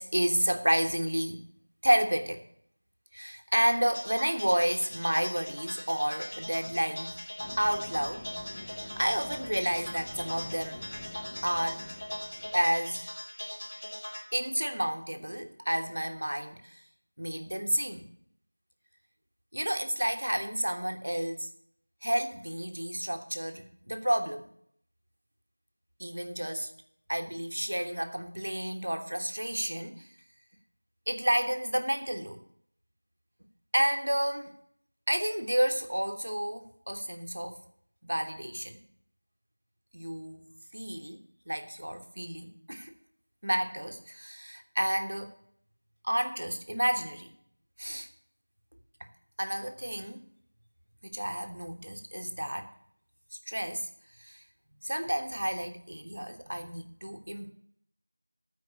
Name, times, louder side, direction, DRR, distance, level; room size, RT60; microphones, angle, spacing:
voice 1, 0.0-1.4 1.8-2.5 3.1-7.2 7.6-8.2 8.9-10.9 11.4-11.9 12.5-13.1 14.3-16.8 17.2-18.1 19.5-21.5 22.0-24.5 26.0-26.7 27.1-30.1 31.1-32.4 33.7-34.5 35.1-37.6 38.0-38.8 39.9-41.2 41.5-42.9 43.4-45.3 46.0-47.3 47.8-48.1 49.4-50.2 51.0-52.7 53.5-53.9 54.2-54.4 54.8-57.5, equal, 55° right, 5 dB, 1.3 m, -30 dB
sound 1, 3.9-14.2, equal, 35° left, 1.6 m, -41 dB
sound 2, 7.4-12.8, left 2 dB, 10° left, 0.3 m, -47 dB
13.0 x 4.8 x 8.5 m, 0.67 s
figure-of-eight pair, 175°, 0 cm